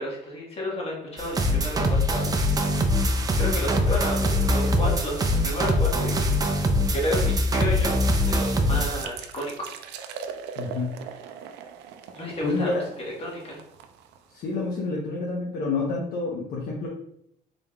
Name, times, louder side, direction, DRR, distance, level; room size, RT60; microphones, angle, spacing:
voice 1, 0.0-2.6 3.4-8.0 8.2-9.8 12.1-12.7 13.0-13.6, left 1 dB, 35° left, -3 dB, 1.4 m, -32 dB
sound 1, 1.2-9.0, left 1 dB, 20° right, 0.5 m, -23 dB
sound 2, 9.0-14.5, right 7 dB, 85° right, 0.4 m, -40 dB
voice 2, 10.6-10.9 12.4-12.8 14.3-16.9, left 3 dB, 65° left, -3 dB, 0.8 m, -29 dB
3.9 x 3.5 x 2.3 m, 0.76 s
cardioid pair, 110°, 17 cm